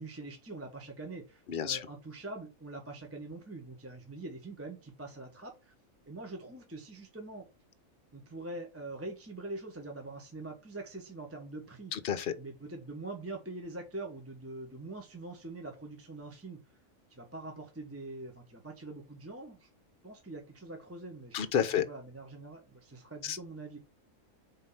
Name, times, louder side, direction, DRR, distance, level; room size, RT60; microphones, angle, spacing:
voice 1, 0.0-5.7 6.0-7.5 8.1-11.9 12.4-16.6 17.1-19.7 20.0-21.4 21.7-23.8, right 2 dB, 10° right, 1.0 m, -44 dB
voice 2, 1.5-1.9 11.9-12.3 21.3-21.9 23.2-23.4, left 8 dB, 50° left, 0.9 m, -30 dB
4.9 x 3.9 x 5.6 m
omnidirectional pair, 1.4 m